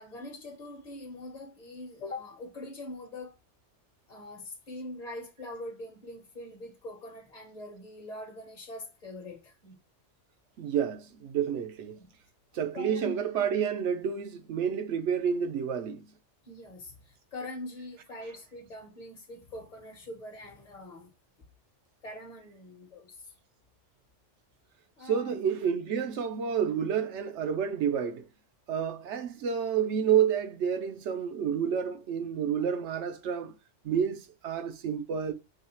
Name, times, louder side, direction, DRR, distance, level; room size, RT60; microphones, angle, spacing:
voice 1, 0.0-3.4 4.1-9.8 12.0-12.1 12.5-13.4 16.4-21.1 22.0-23.3 25.0-25.4, left 1 dB, 40° left, 0.9 m, -43 dB
voice 2, 10.6-12.0 12.5-16.1 18.2-18.3 25.0-28.3 28.7-33.5 33.8-35.3, right 8 dB, 70° right, 0.9 m, -29 dB
4.7 x 2.4 x 4.2 m
omnidirectional pair, 1.3 m